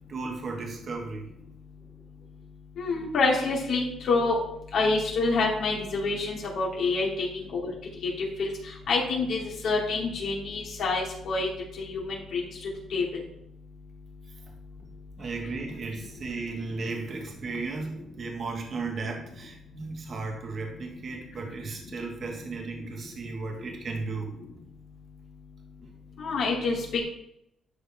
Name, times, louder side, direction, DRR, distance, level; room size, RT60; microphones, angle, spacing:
voice 1, 0.1-1.3 15.2-24.4, right 3 dB, 50° right, 1 dB, 1.7 m, -35 dB
voice 2, 2.8-4.4 4.7-7.7 8.4-8.5 8.9-11.5 11.8-12.0 12.3-12.4 12.9-13.0 26.2-26.7, left 3 dB, 70° left, -3 dB, 3.0 m, -27 dB
11.5 x 4.5 x 3.6 m, 0.77 s
cardioid pair, 90°, 0 cm